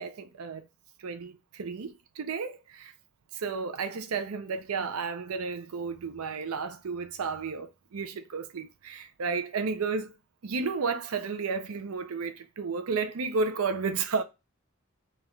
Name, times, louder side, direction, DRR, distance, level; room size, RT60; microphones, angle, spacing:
voice 1, 0.0-0.7 1.0-2.9 3.3-10.1 10.4-14.2, right 4 dB, 80° right, 0.5 m, -32 dB
5.2 x 2.4 x 3.1 m
head